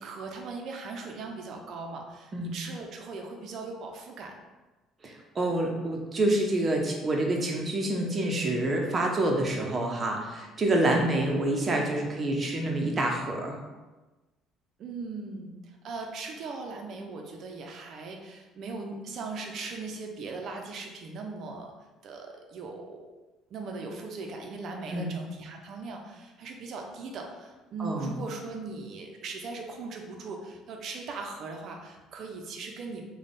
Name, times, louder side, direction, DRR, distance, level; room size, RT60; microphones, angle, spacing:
voice 1, 0.0-4.3 14.8-15.6 15.8-21.7 22.0-23.1 23.5-33.0, right 3 dB, 60° right, 2 dB, 0.6 m, -39 dB
voice 2, 5.0-13.6 24.9-25.1 27.8-28.2, right 1 dB, 35° right, 0 dB, 0.8 m, -27 dB
3.3 x 2.3 x 4.0 m, 1.2 s
supercardioid pair, 80°, 0 cm